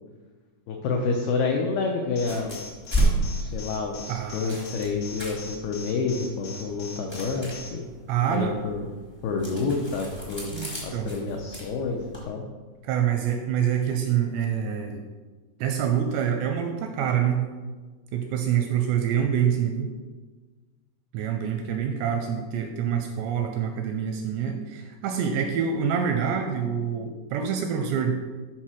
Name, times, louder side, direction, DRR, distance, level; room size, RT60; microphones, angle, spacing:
voice 1, 0.7-2.6 3.4-7.9 8.3-8.9 9.2-10.5 10.8-12.5, left 4 dB, 90° left, 1 dB, 2.2 m, -28 dB
sound 1, 2.1-12.3, right 1 dB, 15° left, 0.3 m, -33 dB
Alarm, 2.2-7.7, left 5 dB, 70° left, 2.3 m, -41 dB
voice 2, 4.1-4.6 8.1-8.6 10.5-11.1 12.8-15.0 15.6-17.4 18.1-19.9 21.1-28.1, right 8 dB, 85° right, 5 dB, 2.5 m, -26 dB
7.5 x 4.3 x 6.2 m, 1.3 s
omnidirectional pair, 5.3 m